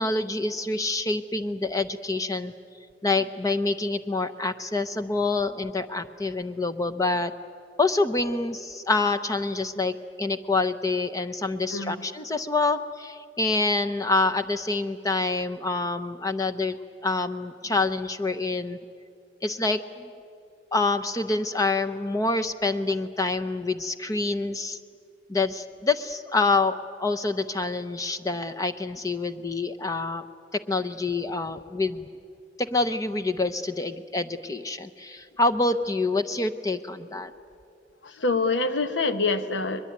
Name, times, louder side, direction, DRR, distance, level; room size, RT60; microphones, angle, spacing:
voice 1, 0.0-2.5 3.0-7.3 7.8-16.8 17.0-18.8 19.4-20.1 20.7-24.8 25.3-30.2 30.7-32.1 32.6-37.3, left 3 dB, 20° left, 9 dB, 0.6 m, -26 dB
voice 2, 11.7-12.0 38.0-39.9, left 3 dB, 85° left, 10 dB, 1.1 m, -26 dB
22.0 x 21.5 x 9.4 m, 2.5 s
head